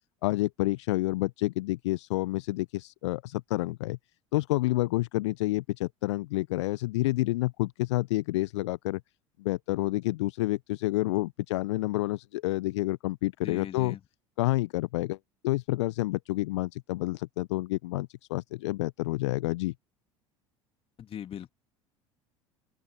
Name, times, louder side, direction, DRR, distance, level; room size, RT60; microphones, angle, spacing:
voice 1, 0.2-4.0 4.3-9.0 9.4-14.0 14.4-15.2 15.4-19.7, left 19 dB, 65° left, 0.5 m, -29 dB
voice 2, 13.4-14.0 21.0-21.5, left 9 dB, 35° left, 2.6 m, -39 dB
open air
figure-of-eight pair, 70°, 16 cm